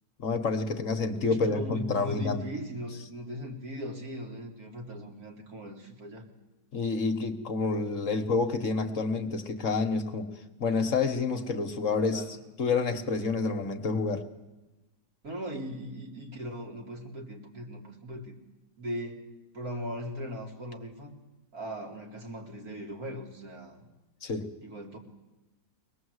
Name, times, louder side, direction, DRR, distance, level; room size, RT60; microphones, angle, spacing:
voice 1, 0.2-2.4 6.7-10.3 10.6-12.2 12.6-14.2 24.2-24.5, left 4 dB, 50° left, 8 dB, 1.7 m, -28 dB
voice 2, 1.2-6.2 12.1-12.4 15.2-18.4 18.8-19.2 19.5-21.1 21.5-23.8 24.6-25.0, equal, 55° right, 1 dB, 3.4 m, -39 dB
24.0 x 19.5 x 8.1 m, 1.0 s
omnidirectional pair, 1.9 m